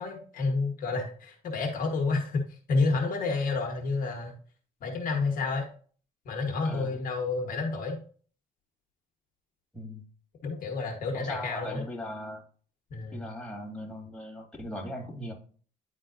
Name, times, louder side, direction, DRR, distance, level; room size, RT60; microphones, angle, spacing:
voice 1, 0.0-4.4 4.8-5.7 6.2-8.0 10.4-11.8 12.9-13.2, left 3 dB, 55° left, 1 dB, 1.3 m, -30 dB
voice 2, 6.6-7.0 9.7-10.0 11.1-12.4 13.1-15.3, left 1 dB, 5° left, -1 dB, 2.0 m, -38 dB
10.0 x 3.8 x 2.5 m, 0.43 s
cardioid pair, 110°, 17 cm